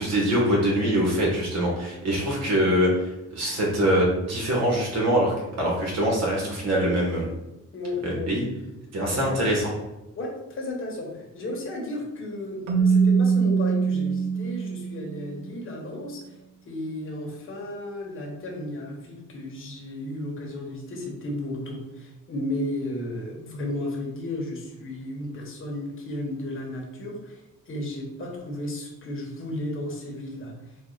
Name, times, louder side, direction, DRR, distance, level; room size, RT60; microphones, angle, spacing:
voice 1, 0.0-7.3 8.0-8.4 8.9-9.7, equal, 60° right, -3 dB, 1.5 m, -24 dB
voice 2, 7.7-8.3 9.0-9.4 10.2-16.4 16.6-27.4 27.7-30.5, left 1 dB, 45° left, -2 dB, 1.3 m, -34 dB
Keyboard (musical), 12.7-15.4, right 5 dB, 85° right, 0.7 m, -23 dB
4.4 x 2.4 x 4.0 m, 0.96 s
cardioid pair, 90°, 30 cm